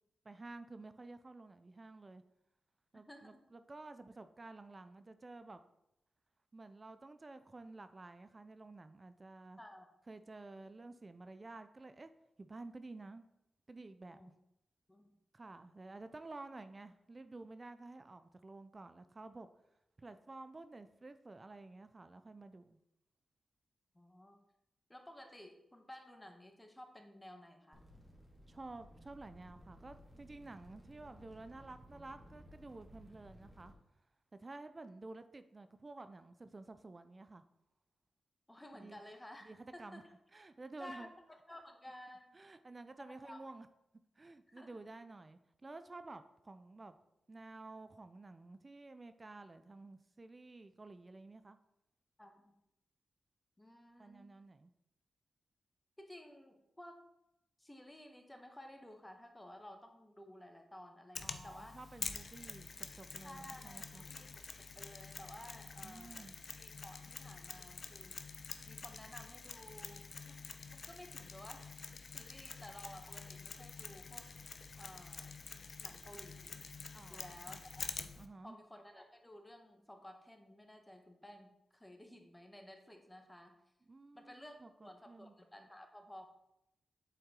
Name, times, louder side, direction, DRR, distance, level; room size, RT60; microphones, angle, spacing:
voice 1, 0.2-2.2 2.9-5.6 6.5-9.6 10.1-12.1 12.4-13.3 13.7-14.2 15.3-19.5 20.0-22.8 28.5-33.7 34.4-37.4 38.7-39.0 39.4-40.0 40.3-41.1 42.3-43.7 44.2-47.0 47.3-51.6 54.0-54.7 61.2-64.1 65.8-66.4 76.9-77.6 78.2-78.6 83.9-85.3, right 2 dB, 40° right, 10 dB, 0.5 m, -52 dB
voice 2, 2.9-3.5 9.6-9.9 14.1-14.3 14.9-15.1 23.9-24.4 24.9-27.9 38.5-40.1 40.8-42.4 43.0-43.5 44.5-44.7 52.2-52.6 53.6-54.3 56.0-57.0 57.6-61.8 63.2-64.5 64.7-66.3 66.5-68.2 68.7-70.4 70.7-74.3 74.8-75.4 75.8-76.6 77.1-78.0 78.4-83.6 84.1-86.3, left 1 dB, 15° left, 5 dB, 1.3 m, -54 dB
sound 1, 27.7-33.7, equal, 15° right, 2.1 m, -58 dB
Mechanisms, 61.2-78.3, left 4 dB, 55° left, 0.5 m, -48 dB
7.9 x 4.3 x 3.8 m, 0.84 s
supercardioid pair, 40°, 0 cm